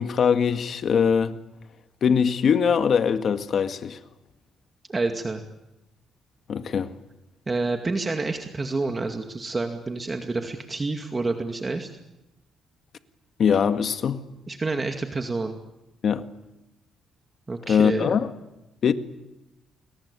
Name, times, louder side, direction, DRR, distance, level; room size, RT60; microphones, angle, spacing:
voice 1, 0.0-1.4 2.0-4.0 6.5-6.9 13.4-14.2 16.0-16.2 17.7-18.3 18.8-18.9, left 7 dB, 55° left, 1.9 m, -22 dB
voice 2, 4.9-5.4 7.5-11.9 14.5-15.6 17.5-18.2, right 3 dB, 25° right, 2.3 m, -28 dB
30.0 x 22.5 x 8.4 m
cardioid pair, 110°, 0 cm